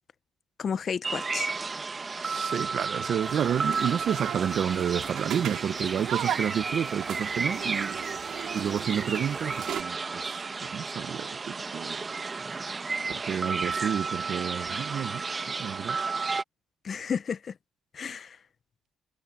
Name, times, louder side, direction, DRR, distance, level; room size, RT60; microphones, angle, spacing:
voice 1, 0.6-1.5 16.8-17.5 17.9-18.4, left 6 dB, 30° left, 0.5 m, -32 dB
sound 1, 1.0-16.4, right 4 dB, 20° right, 1.0 m, -32 dB
voice 2, 2.2-12.1 13.1-16.0, right 8 dB, 45° right, 0.7 m, -30 dB
sound 2, 3.2-9.8, right 11 dB, 60° right, 2.3 m, -37 dB
cardioid pair, 170°, 0 cm